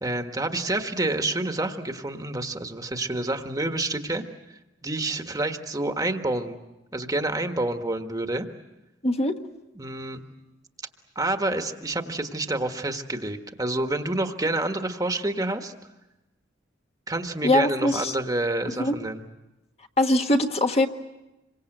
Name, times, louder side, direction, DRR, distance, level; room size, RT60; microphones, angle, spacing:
voice 1, 0.0-4.2 4.8-6.6 6.9-8.5 9.8-10.2 11.1-15.7 17.1-19.3, right 2 dB, 20° right, 6 dB, 1.4 m, -28 dB
voice 2, 9.0-9.4 17.4-18.1 18.6-19.0 20.0-20.9, left 1 dB, 35° left, 4 dB, 1.3 m, -22 dB
27.5 x 24.0 x 7.9 m, 0.99 s
head